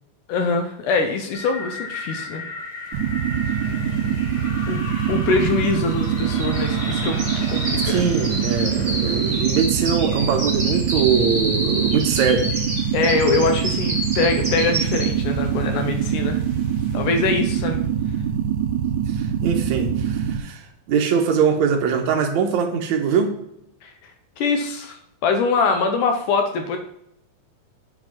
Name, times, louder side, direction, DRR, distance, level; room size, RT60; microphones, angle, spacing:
voice 1, 0.3-2.4 4.7-4.8 5.1-8.1 12.9-16.4 16.9-17.8 23.8-23.9 24.4-26.8, left 4 dB, 75° left, 5 dB, 1.9 m, -23 dB
sound 1, 1.3-9.4, left 3 dB, 55° left, 1.2 m, -35 dB
sound 2, 2.9-20.4, right 9 dB, 85° right, 1.7 m, -24 dB
sound 3, 3.6-3.7 3.9-15.4 15.8-16.1 16.5-16.6, right 1 dB, 15° right, 1.8 m, -30 dB
voice 2, 7.9-12.5 16.5-16.7 19.1-23.3, right 6 dB, 70° right, 3 dB, 1.9 m, -22 dB
8.6 x 4.8 x 5.8 m, 0.78 s
omnidirectional pair, 4.4 m